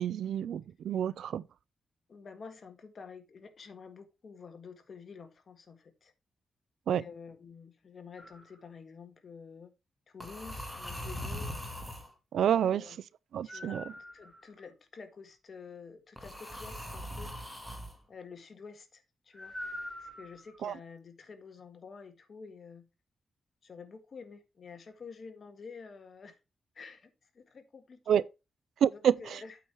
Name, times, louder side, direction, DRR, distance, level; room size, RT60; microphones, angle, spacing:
voice 1, 0.0-1.4 6.9-7.0 12.3-12.8 13.3-13.8 20.6-20.7 28.1-28.2 28.8-29.1, right 9 dB, 85° right, 0.4 m, -28 dB
voice 2, 2.1-6.1 6.9-9.7 10.1-11.5 12.5-13.0 13.4-13.8 14.1-17.3 18.1-19.5 20.0-22.9 23.6-26.3 26.7-28.2 28.9-29.6, left 5 dB, 50° left, 1.6 m, -49 dB
sound 1, 8.2-8.5 10.2-12.1 13.5-14.6 16.2-17.9 19.4-20.6, left 1 dB, 5° left, 2.1 m, -41 dB
8.5 x 4.6 x 4.9 m
cardioid pair, 100°, 0 cm